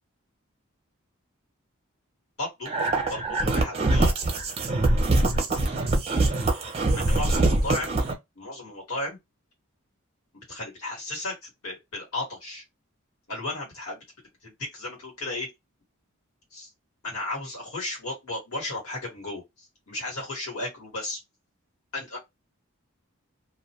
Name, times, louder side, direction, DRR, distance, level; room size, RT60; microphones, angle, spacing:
voice 1, 2.4-2.7 3.1-4.1 7.0-7.9 8.4-9.2 10.3-12.6 13.3-14.0 14.4-15.5 16.5-16.7 17.0-19.4 19.9-21.2 21.9-22.2, left 2 dB, 90° left, 1.4 m, -34 dB
sound 1, 2.7-8.1, right 2 dB, 30° right, 0.6 m, -23 dB
2.4 x 2.2 x 2.8 m
head